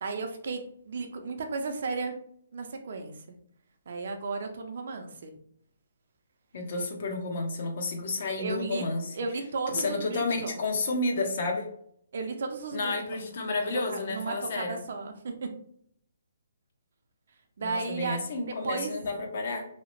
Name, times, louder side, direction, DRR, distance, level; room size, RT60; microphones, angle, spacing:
voice 1, 0.0-2.2 2.5-3.4 3.9-5.3 8.4-8.8 9.1-10.6 12.1-13.2 13.9-15.5 17.6-18.2 18.6-18.9, right 4 dB, 60° right, 5 dB, 0.5 m, -34 dB
voice 2, 6.5-9.2 9.7-11.7 12.7-14.8 17.6-19.6, left 3 dB, 50° left, 3 dB, 0.6 m, -31 dB
2.8 x 2.0 x 3.0 m, 0.66 s
hypercardioid pair, 160°, 0 cm